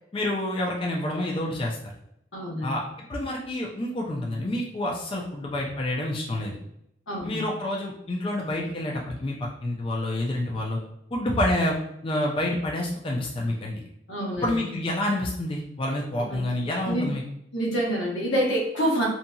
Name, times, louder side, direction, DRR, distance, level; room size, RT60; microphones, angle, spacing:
voice 1, 0.1-1.9 2.6-2.8 3.1-6.6 7.2-10.8 11.1-11.8 12.0-13.7 14.4-17.2, left 1 dB, 30° left, -1 dB, 0.4 m, -28 dB
voice 2, 2.3-2.8 7.1-7.5 14.1-14.7 16.3-16.4 16.9-17.1 17.5-19.1, equal, 85° left, -3 dB, 1.0 m, -27 dB
2.7 x 2.6 x 2.2 m, 0.75 s
head